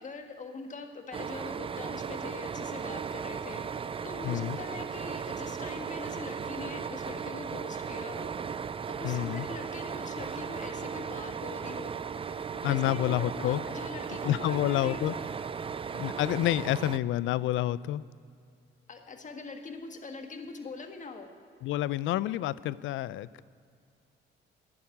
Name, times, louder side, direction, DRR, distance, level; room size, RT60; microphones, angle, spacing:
voice 1, 0.0-3.6 4.0-8.3 8.9-11.9 12.6-15.2 18.9-21.3, left 4 dB, 40° left, 4 dB, 1.6 m, -43 dB
sound 1, 1.1-17.0, right 6 dB, 30° right, 0.4 m, -36 dB
voice 2, 4.2-4.6 9.0-9.5 12.6-13.6 14.2-15.1 15.9-18.0 21.6-23.4, left 14 dB, 80° left, 19 dB, 0.4 m, -28 dB
11.5 x 7.2 x 9.8 m, 2.4 s
cardioid pair, 90°, 20 cm